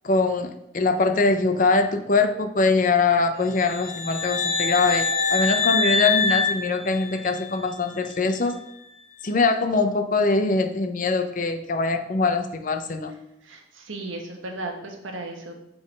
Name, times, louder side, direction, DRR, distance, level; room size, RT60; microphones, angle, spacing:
voice 1, 0.0-8.6 9.2-13.1, left 3 dB, 40° left, 7 dB, 0.5 m, -22 dB
sound 1, 3.5-7.6, left 4 dB, 85° left, 0.6 m, -25 dB
voice 2, 13.4-15.5, right 2 dB, 85° right, 3 dB, 1.1 m, -35 dB
6.0 x 3.8 x 5.0 m, 0.83 s
head